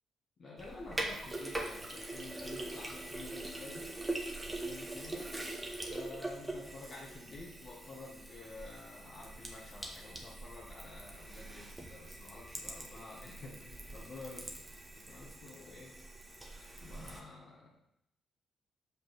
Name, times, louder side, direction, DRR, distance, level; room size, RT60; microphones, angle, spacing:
voice 1, 0.4-3.9 4.5-5.3 5.9-14.7 14.9-16.0 16.8-17.8, left 3 dB, 50° left, -5 dB, 1.7 m, -50 dB
Sink (filling or washing), 0.6-17.2, right 2 dB, 20° right, 1.8 m, -43 dB
5.7 x 5.3 x 5.9 m, 0.80 s
hypercardioid pair, 45°, 0 cm